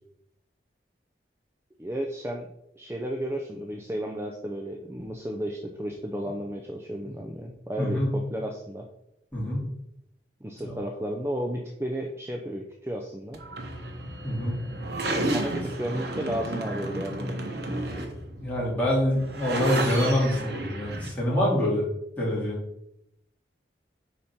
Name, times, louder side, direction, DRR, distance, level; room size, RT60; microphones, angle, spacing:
voice 1, 1.8-2.5 2.8-8.9 10.4-13.4 15.3-17.3, right 1 dB, 15° right, 1 dB, 0.5 m, -33 dB
voice 2, 7.8-8.1 9.3-9.7 10.6-10.7 14.2-14.6 18.4-21.9 22.2-22.6, left 1 dB, 10° left, -6 dB, 2.5 m, -25 dB
sound 1, 13.3-21.1, right 1 dB, 75° right, 1.1 m, -32 dB
5.0 x 4.2 x 5.8 m, 0.80 s
head